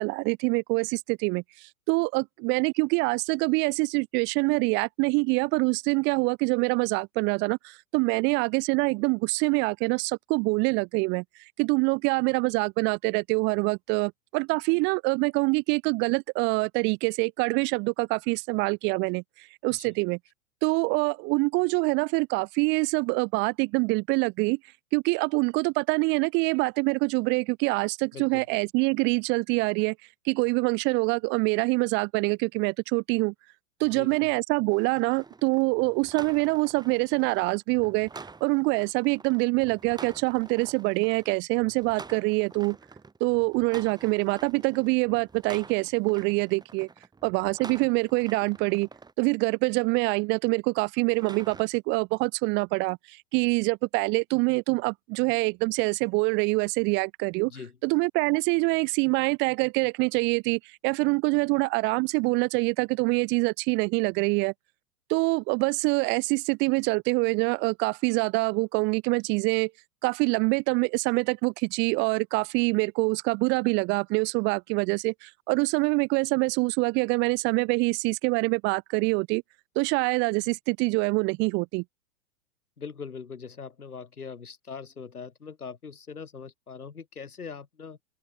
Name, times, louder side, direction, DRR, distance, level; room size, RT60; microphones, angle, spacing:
voice 1, 0.0-20.2 20.6-24.6 24.9-29.9 30.2-33.3 33.8-38.1 38.4-42.8 43.2-46.9 47.2-48.9 49.2-57.5 57.8-64.5 65.1-69.7 70.0-79.4 79.8-81.8, right 29 dB, 25° right, 0.8 m, -25 dB
voice 2, 28.1-28.4 33.8-34.3 57.4-57.7 82.8-88.0, left 5 dB, 75° left, 7.1 m, -41 dB
sound 1, 34.7-49.1 51.0-51.6, right 4 dB, 10° right, 6.0 m, -47 dB
open air
figure-of-eight pair, 105°, 45 cm